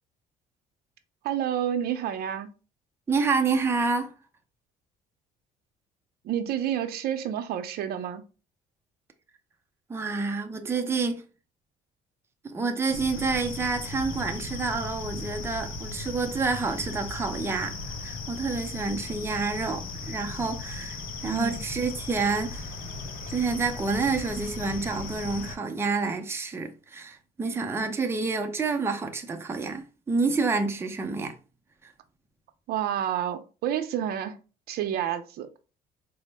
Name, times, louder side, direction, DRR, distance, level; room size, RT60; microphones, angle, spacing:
voice 1, 1.2-2.5 6.2-8.2 21.2-21.6 32.7-34.4 34.7-35.5, right 10 dB, 65° right, 0.5 m, -29 dB
voice 2, 3.1-4.1 9.9-11.2 12.4-17.8 18.0-22.7 23.3-31.4 31.8-31.9, right 4 dB, 15° right, 0.5 m, -28 dB
sound 1, 12.9-25.6, left 3 dB, 55° left, 0.8 m, -37 dB
4.2 x 2.0 x 3.2 m
cardioid pair, 110°, 17 cm